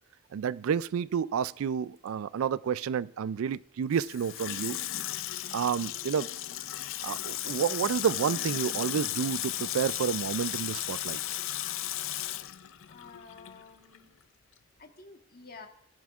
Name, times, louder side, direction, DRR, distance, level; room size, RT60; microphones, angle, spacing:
voice 1, 0.3-4.8 5.5-6.3 7.0-11.2, right 7 dB, 75° right, 0.3 m, -30 dB
Water tap faucet / Sink (filling or washing), 3.9-13.6 13.9-14.0, left 13 dB, 65° left, 0.5 m, -35 dB
voice 2, 12.9-14.1 14.8-15.7, left 4 dB, 45° left, 1.3 m, -50 dB
18.0 x 10.5 x 2.4 m
head